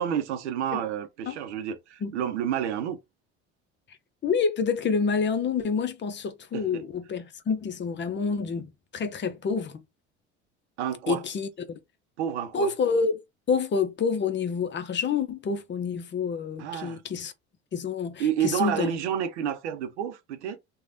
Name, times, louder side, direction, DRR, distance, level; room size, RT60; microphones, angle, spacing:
voice 1, 0.0-3.0 6.5-6.8 10.8-11.2 12.2-12.7 16.6-17.0 18.2-20.6, right 9 dB, 90° right, 0.6 m, -29 dB
voice 2, 4.2-8.7 8.9-9.8 11.1-11.5 12.5-13.2 13.5-17.3 17.7-18.9, left 5 dB, 35° left, 0.7 m, -28 dB
3.1 x 2.3 x 2.6 m
hypercardioid pair, 70°, 33 cm